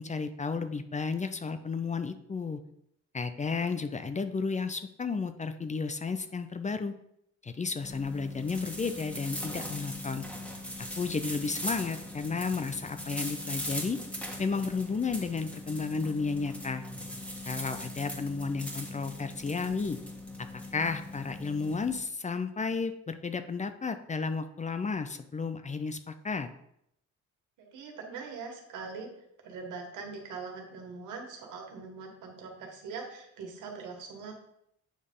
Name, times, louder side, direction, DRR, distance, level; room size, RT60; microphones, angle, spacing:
voice 1, 0.0-2.6 3.1-6.9 7.4-10.2 11.0-14.0 14.4-16.8 17.5-20.0 20.7-26.5, left 4 dB, 25° left, 10 dB, 0.6 m, -32 dB
sound 1, 7.8-22.0, left 1 dB, 5° left, 1.6 m, -40 dB
voice 2, 27.6-29.1 29.4-34.3, right 5 dB, 85° right, 2 dB, 1.7 m, -42 dB
8.7 x 3.4 x 5.5 m, 0.76 s
cardioid pair, 90°, 30 cm